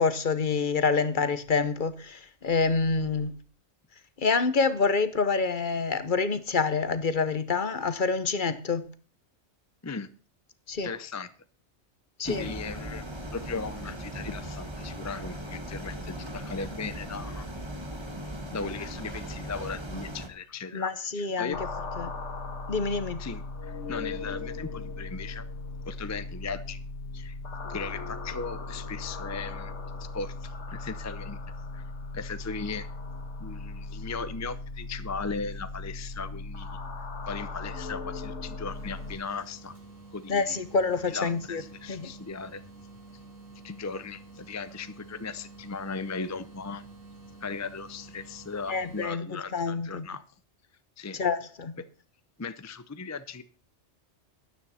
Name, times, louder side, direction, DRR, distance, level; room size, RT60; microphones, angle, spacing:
voice 1, 0.0-3.3 4.2-8.9 10.7-10.9 12.2-12.5 20.7-21.6 22.0-22.1 22.7-23.2 40.3-41.6 41.9-42.1 48.7-50.1 51.1-51.8, left 4 dB, 45° left, 1.0 m, -27 dB
voice 2, 10.8-11.3 12.2-13.0 13.3-17.5 18.5-21.6 23.2-25.4 25.8-26.8 27.1-27.4 27.7-29.7 30.1-31.4 31.7-31.8 32.1-32.9 33.4-36.8 37.3-39.8 40.1-40.6 41.1-42.6 43.6-46.9 47.4-50.2 51.0-51.2 52.4-53.4, left 4 dB, 25° left, 0.4 m, -37 dB
sound 1, 12.2-20.3, equal, 25° right, 1.3 m, -38 dB
sound 2, 21.5-39.1, left 3 dB, 80° left, 1.7 m, -38 dB
sound 3, 38.7-49.1, right 2 dB, 50° right, 5.1 m, -49 dB
12.5 x 9.8 x 4.2 m
omnidirectional pair, 1.2 m